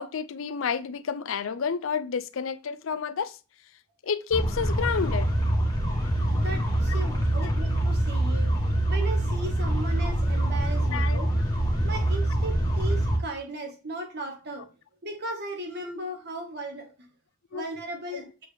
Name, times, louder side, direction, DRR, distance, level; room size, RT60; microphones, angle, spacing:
voice 1, 0.0-3.4 4.0-5.3 6.9-7.0 7.4-7.5 10.9-11.2 17.5-17.7 18.1-18.2, left 6 dB, 75° left, 0.5 m, -30 dB
sound 1, 4.3-13.2, right 1 dB, 20° left, 1.6 m, -25 dB
voice 2, 6.3-11.3 11.8-14.7 15.0-17.1 17.5-18.3, right 2 dB, 55° right, 1.6 m, -36 dB
7.6 x 4.5 x 3.4 m
head